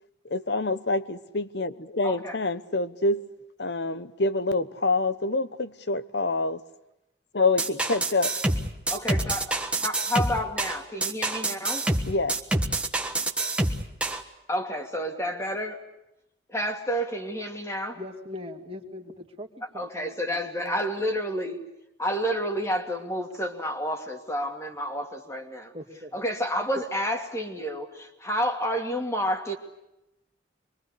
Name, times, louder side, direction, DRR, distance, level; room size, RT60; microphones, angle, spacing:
voice 1, 0.2-3.2 3.6-6.6 7.3-8.3 12.1-12.4, left 2 dB, 60° left, 13 dB, 1.1 m, -26 dB
sound 1, 7.6-14.2, right 2 dB, 5° right, 1.5 m, -27 dB
voice 2, 8.9-11.9 14.5-15.8 16.5-18.0 19.8-21.6 22.0-25.7 26.1-29.6, equal, 15° left, 3 dB, 2.6 m, -30 dB
voice 3, 17.9-20.8 25.7-26.2 26.7-26.8, left 1 dB, 30° right, 2 dB, 2.5 m, -40 dB
25.5 x 23.5 x 8.3 m, 0.89 s
head